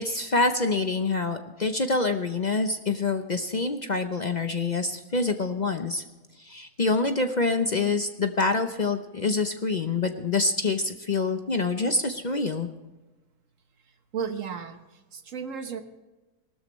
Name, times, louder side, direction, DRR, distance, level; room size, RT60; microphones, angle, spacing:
voice 1, 0.0-6.0 6.4-12.7, left 3 dB, 40° left, 7 dB, 0.6 m, -26 dB
voice 2, 13.8-15.8, right 6 dB, 60° right, 7 dB, 1.5 m, -35 dB
19.0 x 13.0 x 3.1 m, 1.1 s
omnidirectional pair, 1.6 m